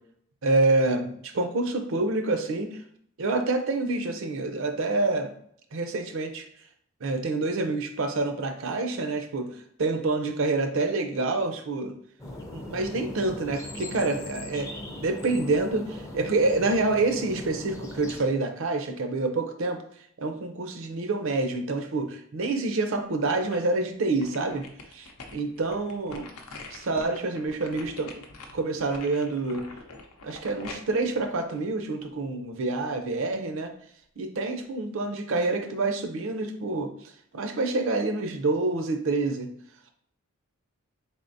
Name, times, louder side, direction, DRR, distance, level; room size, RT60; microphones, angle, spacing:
voice 1, 0.4-2.8 3.2-5.3 5.7-6.5 7.0-12.0 12.5-14.7 15.0-19.8 20.2-24.7 24.9-26.3 26.7-28.2 28.5-29.7 30.2-33.7 34.2-36.9 37.3-39.5, right 3 dB, 60° right, 7 dB, 0.5 m, -27 dB
sound 1, 12.2-18.2, left 1 dB, 15° left, 0.5 m, -39 dB
sound 2, 23.4-23.8 24.2-32.3 32.7-32.8, left 3 dB, 85° left, 0.6 m, -45 dB
4.0 x 3.5 x 2.6 m, 0.65 s
head